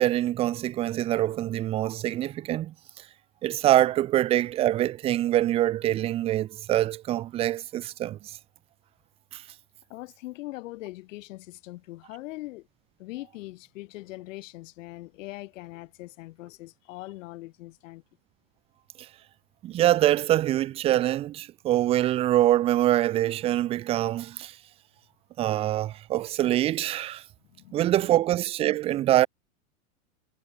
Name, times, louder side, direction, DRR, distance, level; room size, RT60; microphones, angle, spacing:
voice 1, 0.0-2.7 3.4-8.2 9.3-9.4 19.6-24.6 25.4-27.2 27.7-29.3, right 13 dB, 15° right, 0.3 m, -24 dB
voice 2, 9.9-12.7 13.0-18.0 27.5-27.9, left 19 dB, 60° left, 5.2 m, -41 dB
hypercardioid pair, 110°, 42 cm